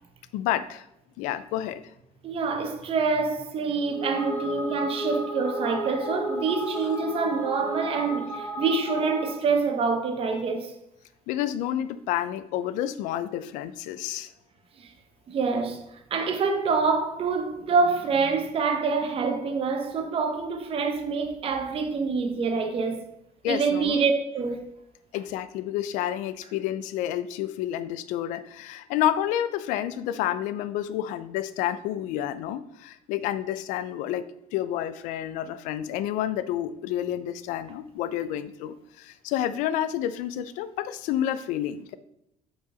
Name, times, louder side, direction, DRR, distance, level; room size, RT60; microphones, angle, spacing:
voice 1, 0.3-0.9 1.2-1.8 11.3-14.3 23.4-24.0 25.1-42.0, left 11 dB, 85° left, 0.5 m, -29 dB
voice 2, 2.2-10.7 14.8-14.9 15.3-23.1 23.4-24.7, right 4 dB, 45° right, 1.1 m, -26 dB
sound 1, 3.8-9.5, equal, 20° left, 2.4 m, -34 dB
5.5 x 4.8 x 4.9 m
cardioid pair, 105°, 13 cm